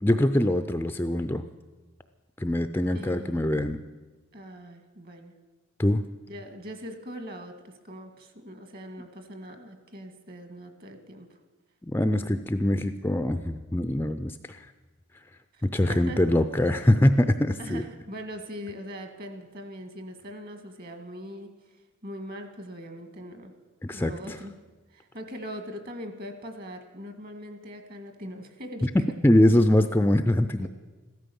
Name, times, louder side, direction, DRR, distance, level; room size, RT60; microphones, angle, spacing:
voice 1, 0.0-1.4 2.4-3.8 5.8-6.0 11.8-14.6 15.7-17.8 23.8-24.1 28.8-30.7, left 1 dB, 10° left, 9 dB, 0.4 m, -23 dB
voice 2, 2.9-3.4 4.3-5.3 6.3-11.4 15.5-16.2 17.6-21.5 22.0-23.5 23.9-24.6 24.9-28.9 30.6-30.7, equal, 45° right, 7 dB, 1.7 m, -41 dB
15.0 x 13.0 x 7.0 m, 1.2 s
head